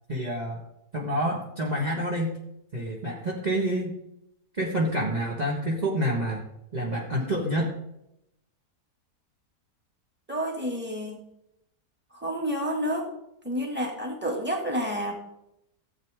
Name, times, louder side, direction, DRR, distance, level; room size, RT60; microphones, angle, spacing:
voice 1, 0.1-0.6 0.9-2.4 2.7-4.0 4.6-6.4 6.7-7.7, right 1 dB, 25° right, -3 dB, 1.6 m, -28 dB
voice 2, 10.3-11.2 12.1-13.1 13.4-15.1, equal, 5° right, 0 dB, 2.2 m, -29 dB
16.0 x 8.5 x 3.6 m, 0.82 s
omnidirectional pair, 1.7 m